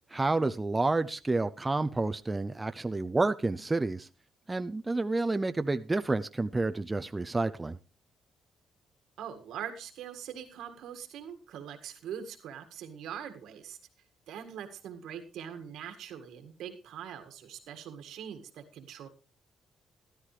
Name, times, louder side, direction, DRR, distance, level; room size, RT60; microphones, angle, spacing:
voice 1, 0.1-4.1 4.5-7.8, right 2 dB, 20° right, 0.6 m, -29 dB
voice 2, 9.2-13.8 14.3-19.1, right 8 dB, 80° right, 1.8 m, -42 dB
13.5 x 12.5 x 3.3 m
cardioid pair, 90°, 0 cm